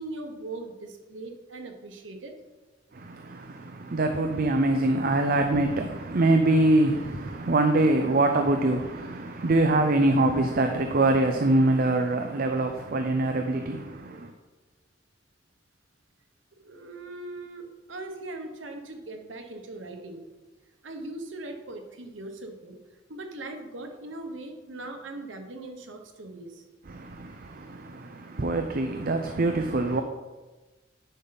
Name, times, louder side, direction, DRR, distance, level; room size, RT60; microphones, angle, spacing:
voice 1, 0.0-2.3 16.6-20.2 20.8-22.8 23.1-26.7, right 2 dB, 90° right, 1.2 m, -40 dB
voice 2, 2.9-14.3 26.9-30.0, right 2 dB, 50° right, 0.6 m, -24 dB
10.0 x 5.5 x 4.1 m
head